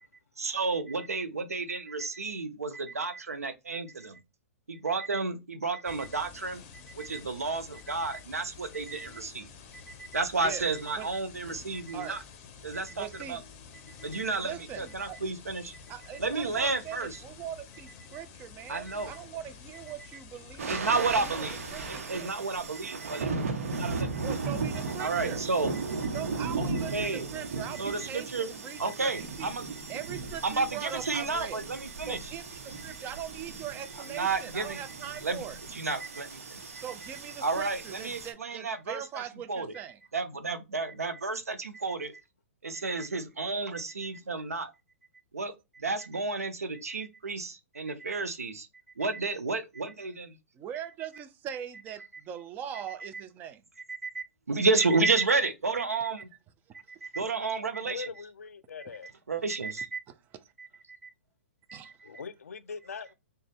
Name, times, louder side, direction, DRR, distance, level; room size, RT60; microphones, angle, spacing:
voice 1, 0.4-4.2 4.7-6.6 6.9-9.5 10.1-12.2 12.6-13.4 14.0-15.8 16.2-17.2 18.7-19.1 20.7-21.6 21.9-23.3 23.7-24.2 25.0-25.7 26.6-27.3 27.8-28.5 28.8-29.6 30.4-32.3 34.1-34.8 35.2-35.4 35.7-36.6 37.4-39.0 39.5-39.7 40.1-42.2 42.6-44.7 45.3-48.7 49.0-50.4 53.9-56.3 57.0-58.1 59.3-60.0 60.6-61.1 61.7-61.9, right 3 dB, 90° right, 0.6 m, -31 dB
sound 1, 5.8-22.0, left 5 dB, 35° left, 0.7 m, -50 dB
voice 2, 12.9-13.4 14.4-15.2 15.9-21.4 21.7-22.3 24.2-25.4 26.1-29.5 29.9-31.7 32.1-35.6 36.8-40.0 50.5-53.6 56.7-56.8 60.1-60.5 61.7-61.9, right 9 dB, 25° right, 0.4 m, -41 dB
sound 2, 20.6-38.3, right 4 dB, 70° right, 0.9 m, -36 dB
voice 3, 57.8-59.1 62.0-63.1, left 5 dB, 80° left, 0.4 m, -41 dB
3.7 x 2.2 x 3.4 m
hypercardioid pair, 125°, 8 cm